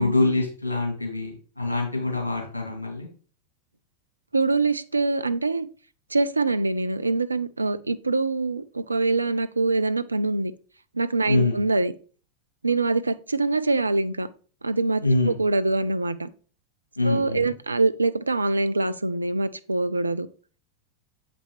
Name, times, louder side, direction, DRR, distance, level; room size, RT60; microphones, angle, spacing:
voice 1, 0.0-3.1 11.2-11.6 15.0-15.3 17.0-17.5, left 2 dB, 80° left, 2.4 m, -24 dB
voice 2, 4.3-5.7 6.1-10.5 10.9-11.9 12.6-14.3 14.6-16.3 17.0-20.3, right 3 dB, 80° right, 0.4 m, -24 dB
7.4 x 5.2 x 3.2 m
figure-of-eight pair, 90°, 0 cm